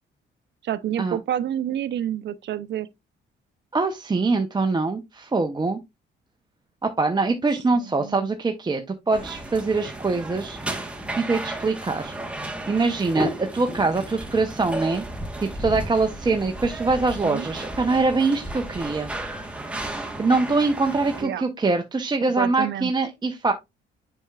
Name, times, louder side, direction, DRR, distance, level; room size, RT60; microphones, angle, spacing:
voice 1, 0.6-2.9 7.8-8.3 17.2-17.5 21.2-21.4 22.2-22.9, right 11 dB, 65° right, 0.6 m, -29 dB
voice 2, 3.7-5.8 6.8-10.8 11.2-12.1 12.7-15.0 15.4-19.1 19.9-23.5, right 3 dB, 20° right, 0.8 m, -23 dB
sound 1, 9.1-21.2, right 1 dB, 5° right, 1.3 m, -33 dB
7.0 x 5.8 x 2.4 m
cardioid pair, 90°, 20 cm